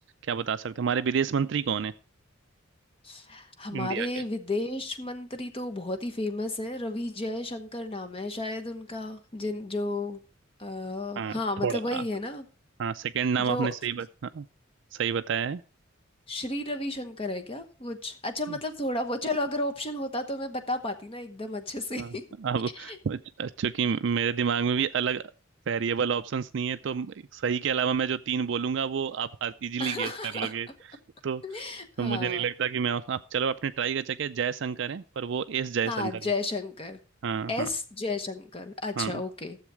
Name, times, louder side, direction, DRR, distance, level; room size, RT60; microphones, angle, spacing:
voice 1, 0.3-1.9 3.7-4.1 11.2-12.0 12.8-14.5 14.9-15.6 18.5-18.6 22.0-22.1 22.4-25.2 25.7-30.7 31.2-31.4 32.0-36.1 37.2-37.5 39.0-39.2, right 6 dB, 60° right, 11 dB, 0.4 m, -29 dB
voice 2, 3.0-10.2 10.6-12.4 13.4-13.7 16.3-22.2 22.7-23.0 29.8-30.5 31.4-32.5 35.9-37.0 37.5-39.6, left 2 dB, 30° left, 8 dB, 1.0 m, -33 dB
13.0 x 7.3 x 4.7 m, 0.36 s
head